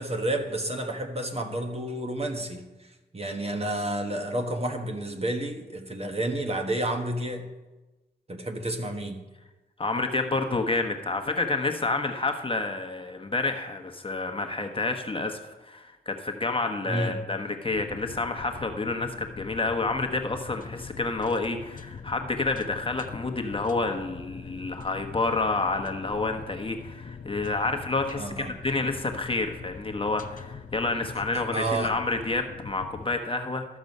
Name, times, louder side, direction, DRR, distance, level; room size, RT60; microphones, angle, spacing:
voice 1, 0.0-2.6 3.1-7.5 8.3-9.2 16.8-17.2 28.1-28.5 31.1-31.9, right 1 dB, 35° right, 4 dB, 1.3 m, -30 dB
voice 2, 9.8-33.7, left 3 dB, 30° left, 4 dB, 1.1 m, -29 dB
sound 1, 17.7-33.2, left 6 dB, 45° left, 0.6 m, -43 dB
13.5 x 6.1 x 5.4 m, 1.1 s
cardioid pair, 65°, 18 cm